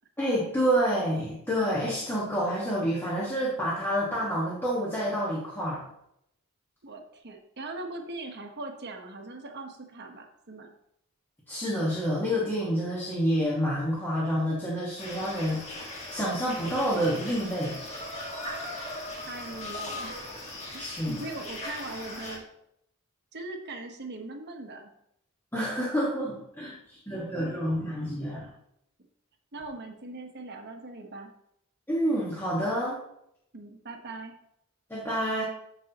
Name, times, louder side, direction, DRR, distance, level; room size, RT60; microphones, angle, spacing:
voice 1, 0.2-5.8 11.5-17.8 20.8-21.2 25.5-28.5 31.9-33.0 34.9-35.4, equal, 10° left, -6 dB, 1.5 m, -28 dB
voice 2, 6.8-10.7 19.2-20.2 20.7-22.4 23.3-24.9 29.5-31.3 33.5-34.3, right 2 dB, 50° right, 4 dB, 1.2 m, -40 dB
sound 1, 15.0-22.4, left 1 dB, 30° left, 1.7 m, -39 dB
14.0 x 5.4 x 2.9 m, 0.79 s
head